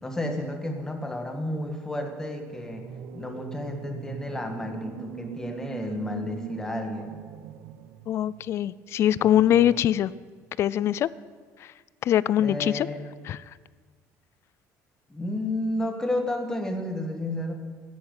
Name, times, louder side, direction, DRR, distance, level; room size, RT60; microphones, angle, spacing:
voice 1, 0.0-7.2 9.2-9.8 12.4-13.0 15.1-17.5, left 1 dB, 10° left, 4 dB, 1.5 m, -32 dB
sound 1, 2.5-8.7, right 8 dB, 80° right, 0.8 m, -40 dB
voice 2, 8.1-10.1 10.6-11.1 12.0-12.9 13.3-13.4, left 11 dB, 45° left, 20 dB, 0.4 m, -22 dB
13.5 x 10.5 x 8.2 m, 1.5 s
cardioid pair, 165°, 6 cm